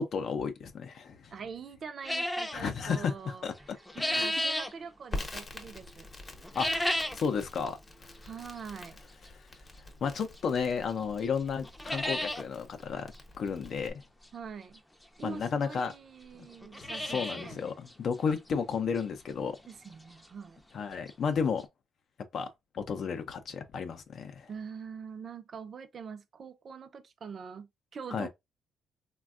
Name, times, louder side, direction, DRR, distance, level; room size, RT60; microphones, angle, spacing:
voice 1, 0.0-1.3 2.5-3.1 3.4-3.8 4.1-4.3 6.5-6.9 7.1-7.8 10.0-14.0 15.2-15.9 16.8-19.6 20.7-21.7 22.3-22.5 22.7-24.5 28.1-28.3, left 6 dB, 60° left, 0.5 m, -32 dB
voice 2, 1.3-6.1 8.2-9.0 14.3-14.8 15.2-17.6 19.7-20.6 24.5-28.3, right 6 dB, 50° right, 0.5 m, -44 dB
sound 1, 2.0-2.6 3.6-4.7 6.4-7.3 7.7-7.8 8.6-8.7 10.4-10.5 10.9-11.0 11.3-11.4 11.6-12.4 12.8-12.9 13.1-13.2 14.8-14.9 15.6-15.7 15.9-16.0 16.5-17.5 17.9-18.0 18.5-18.6 19.0-19.1 20.8-20.9 21.1-21.2 21.6-21.7, left 1 dB, 5° left, 0.5 m, -32 dB
Crackle, 5.1-13.9, left 2 dB, 30° left, 0.8 m, -45 dB
3.3 x 2.2 x 2.4 m
cardioid pair, 90°, 0 cm